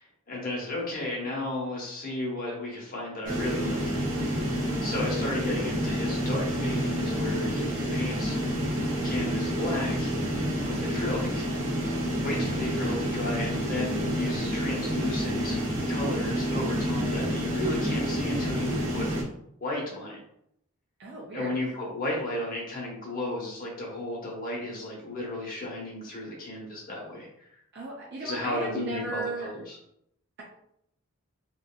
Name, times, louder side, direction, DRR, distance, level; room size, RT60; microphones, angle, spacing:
voice 1, 0.0-3.8 4.8-8.4 8.9-10.1 10.7-11.5 12.2-15.6 15.9-19.1 19.6-20.2 21.3-27.5 28.2-29.8, left 1 dB, 40° left, -3 dB, 0.9 m, -33 dB
sound 1, 3.2-19.2, equal, 85° right, 1.0 m, -29 dB
voice 2, 12.4-12.9 21.0-21.5 27.7-29.5, right 3 dB, 50° right, -3 dB, 0.5 m, -36 dB
2.9 x 2.5 x 2.3 m, 0.75 s
head